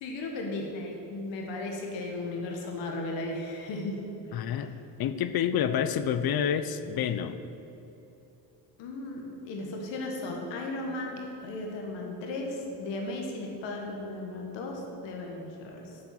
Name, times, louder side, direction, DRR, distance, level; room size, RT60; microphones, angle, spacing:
voice 1, 0.0-3.9 4.3-4.7 8.8-16.0, left 2 dB, 90° left, 0 dB, 1.5 m, -36 dB
voice 2, 4.3-4.7 5.0-7.4, left 8 dB, 60° left, 12 dB, 0.7 m, -28 dB
11.0 x 4.5 x 7.6 m, 2.9 s
cardioid pair, 75°, 42 cm